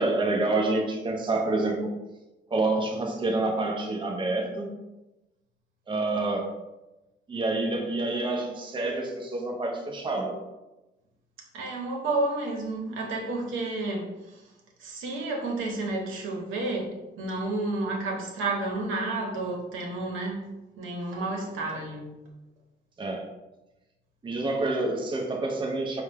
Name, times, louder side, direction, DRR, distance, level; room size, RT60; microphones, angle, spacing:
voice 1, 0.0-1.9 2.5-4.7 5.9-6.5 7.3-10.4 23.0-23.3 24.2-26.0, right 2 dB, 25° right, 1 dB, 0.6 m, -27 dB
voice 2, 11.5-14.4 14.8-22.2, right 2 dB, 80° right, -1 dB, 0.9 m, -31 dB
4.2 x 2.3 x 3.4 m, 1.0 s
cardioid pair, 90°, 20 cm